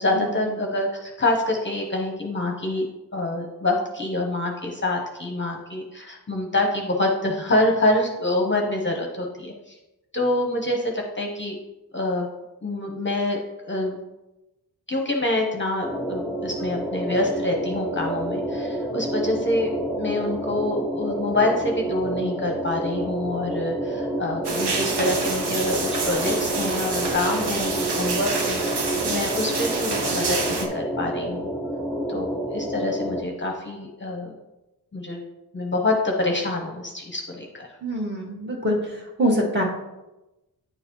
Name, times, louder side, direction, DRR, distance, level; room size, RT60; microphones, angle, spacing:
voice 1, 0.0-2.8 3.1-9.7 10.1-11.6 11.9-12.3 12.6-13.4 13.7-14.0 14.9-19.7 20.0-25.8 26.0-31.5 32.1-34.3 34.9-35.2 35.5-37.7, left 2 dB, 30° left, 1 dB, 0.8 m, -26 dB
sound 1, 15.8-33.2, right 1 dB, ahead, 1.2 m, -29 dB
sound 2, 24.4-30.7, right 4 dB, 80° right, 0.9 m, -27 dB
voice 2, 37.8-38.8 39.2-39.6, equal, 25° right, -2 dB, 1.7 m, -23 dB
9.3 x 3.9 x 3.0 m, 0.99 s
wide cardioid pair, 85°, 39 cm